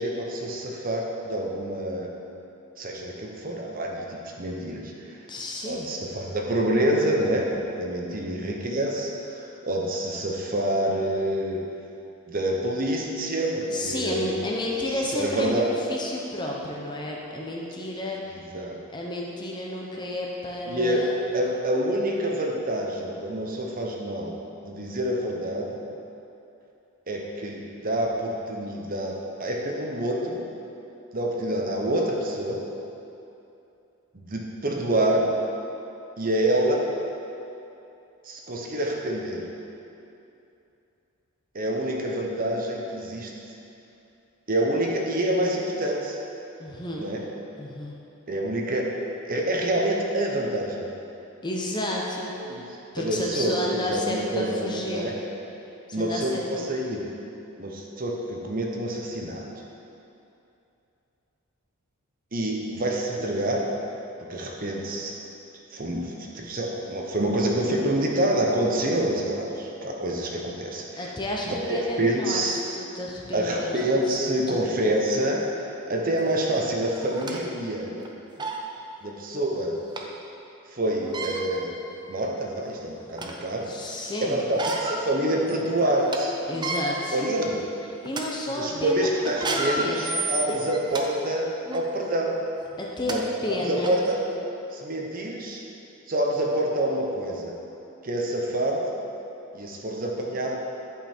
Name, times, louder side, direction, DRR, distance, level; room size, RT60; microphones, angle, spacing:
voice 1, 0.0-2.1 2.8-4.9 5.7-11.6 12.3-14.4 15.1-15.7 18.5-18.8 20.7-24.4 24.6-25.8 27.1-29.1 29.4-30.4 31.1-32.6 34.1-35.2 36.2-36.8 38.2-39.4 41.5-43.3 44.5-46.2 47.0-47.2 48.3-48.9 49.2-50.8 52.5-52.6 53.0-55.1 55.9-57.1 57.6-59.4 62.3-63.7 64.3-65.1 65.7-71.1 71.4-72.6 73.3-75.4 75.9-77.9 79.0-79.7 80.7-81.8 82.1-83.7 84.3-86.4 87.1-87.6 88.6-92.3 93.0-93.2 93.6-94.4 94.7-95.6 96.1-97.5 98.0-98.8 99.5-100.5, right 1 dB, 40° right, -1 dB, 0.9 m, -27 dB
voice 2, 5.3-5.9 13.7-18.2 18.9-21.2 46.6-47.1 47.6-47.9 51.4-52.6 52.9-55.1 55.9-56.6 71.0-74.2 74.5-74.6 83.6-84.5 86.5-87.2 88.0-89.1 89.4-90.3 92.8-94.1, left 1 dB, 20° left, -2 dB, 0.8 m, -31 dB
sound 1, 76.2-76.3 77.0-77.4 78.0-78.1 78.4-78.6 80.0-80.1 81.0-81.4 82.2-82.3 82.7-83.4 84.4-85.0 85.4-85.5 85.9-86.2 86.5-86.8 87.5-87.7 88.1-88.2 89.3-91.0 91.7-91.8 92.7-92.8 93.1-93.2 93.8-93.9, right 2 dB, 20° right, 0.5 m, -31 dB
10.5 x 5.4 x 4.5 m, 2.8 s
head